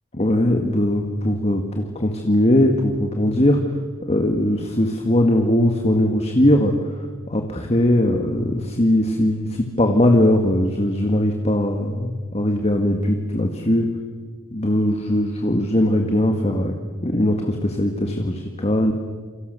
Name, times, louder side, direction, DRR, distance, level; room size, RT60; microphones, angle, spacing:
voice 1, 0.2-3.6 4.1-6.8 7.3-13.9 14.5-16.7 17.0-18.9, left 1 dB, 30° left, 4 dB, 1.8 m, -20 dB
28.5 x 24.5 x 6.8 m, 1.5 s
head